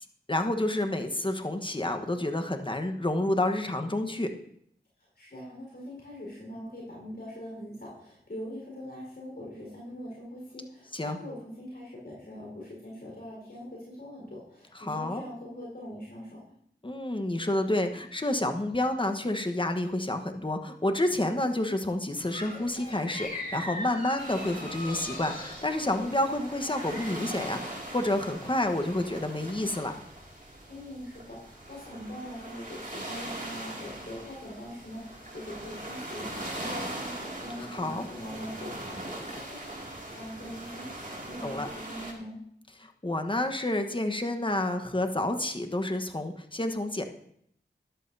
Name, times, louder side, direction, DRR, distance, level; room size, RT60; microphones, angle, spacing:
voice 1, 0.3-4.3 10.9-11.2 14.7-15.2 16.8-30.0 37.7-38.0 41.4-41.7 42.8-47.0, left 1 dB, 25° left, 6 dB, 1.2 m, -29 dB
voice 2, 5.2-16.4 30.7-42.4, left 1 dB, 65° left, -4 dB, 4.6 m, -42 dB
sound 1, 22.2-28.1, left 1 dB, 45° left, 2.7 m, -41 dB
sound 2, 24.2-42.1, right 1 dB, 45° right, 2.4 m, -41 dB
13.5 x 11.0 x 2.7 m, 0.69 s
wide cardioid pair, 45°, 19 cm